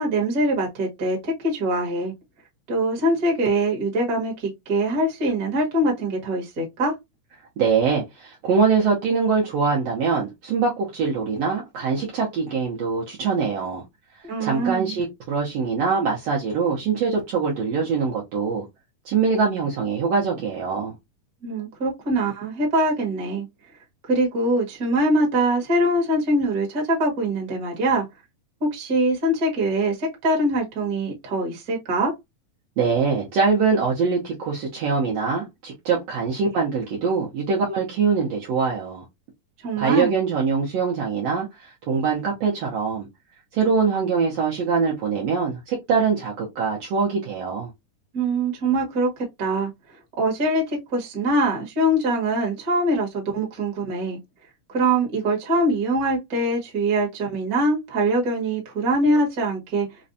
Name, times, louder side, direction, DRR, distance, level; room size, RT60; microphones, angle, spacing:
voice 1, 0.0-2.1 2.7-6.9 14.2-15.0 21.4-23.4 24.1-28.0 28.6-32.1 39.6-40.1 48.1-49.1 49.4-49.7 50.2-54.2 54.7-59.9, right 1 dB, 45° right, 1.1 m, -23 dB
voice 2, 7.6-13.8 14.4-18.6 19.0-20.9 32.8-39.0 39.8-43.1 43.5-47.7, right 5 dB, 70° right, 1.6 m, -23 dB
5.0 x 2.2 x 2.6 m
omnidirectional pair, 3.6 m